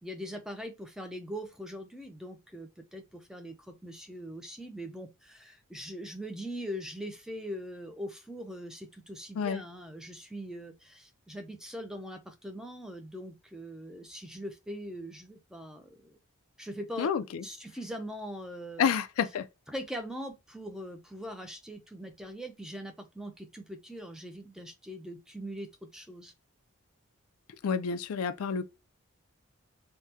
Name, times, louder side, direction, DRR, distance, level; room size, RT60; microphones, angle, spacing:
voice 1, 0.0-16.2 16.6-17.1 17.4-19.0 19.7-26.3, equal, 5° right, 0.4 m, -41 dB
voice 2, 17.0-17.4 18.8-19.5 27.6-28.6, left 7 dB, 80° left, 0.4 m, -29 dB
3.5 x 2.0 x 2.7 m
head